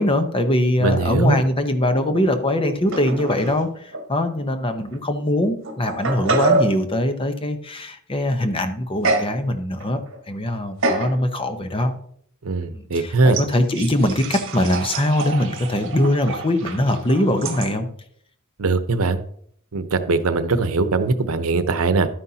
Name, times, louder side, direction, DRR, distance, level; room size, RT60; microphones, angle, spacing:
voice 1, 0.0-10.0 10.3-12.0 12.7-17.9, left 1 dB, 25° left, 7 dB, 0.9 m, -22 dB
voice 2, 0.8-1.4 12.4-13.4 18.6-19.2 19.7-22.1, right 3 dB, 90° right, 10 dB, 0.8 m, -20 dB
sound 1, 2.9-3.6 3.9-4.0 4.9-5.0 5.6-6.8 9.0-9.4 9.8-10.2 10.8-11.2 11.7-11.9 13.3-17.7, right 2 dB, 60° right, 1.6 m, -26 dB
11.5 x 9.6 x 2.8 m, 0.65 s
head